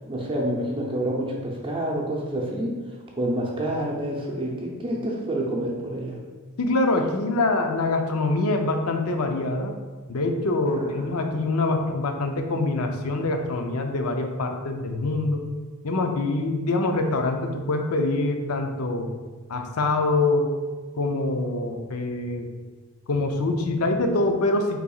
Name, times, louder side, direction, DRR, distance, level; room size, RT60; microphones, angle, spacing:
voice 1, 0.0-2.7 3.2-6.2 10.7-11.2, right 1 dB, 25° right, -2 dB, 0.6 m, -28 dB
voice 2, 6.6-9.7 10.1-15.4 15.8-19.1 19.5-20.5 21.0-22.5 23.1-24.8, left 2 dB, 75° left, 5 dB, 0.6 m, -24 dB
5.6 x 4.0 x 2.4 m, 1.4 s
head